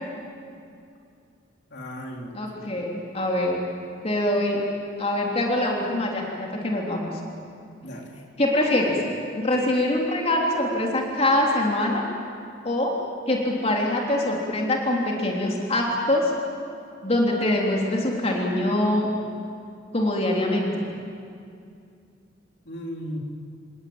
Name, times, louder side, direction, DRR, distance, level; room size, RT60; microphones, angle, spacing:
voice 1, 1.7-2.7 7.8-8.2 22.7-23.2, equal, 60° left, 0 dB, 3.5 m, -36 dB
voice 2, 2.3-3.6 4.0-4.6 5.0-7.1 8.4-9.0 9.3-12.1 12.6-12.9 13.3-16.3 17.0-19.1 19.9-20.9, left 1 dB, 35° left, -1 dB, 3.5 m, -24 dB
28.5 x 18.0 x 8.9 m, 2.4 s
head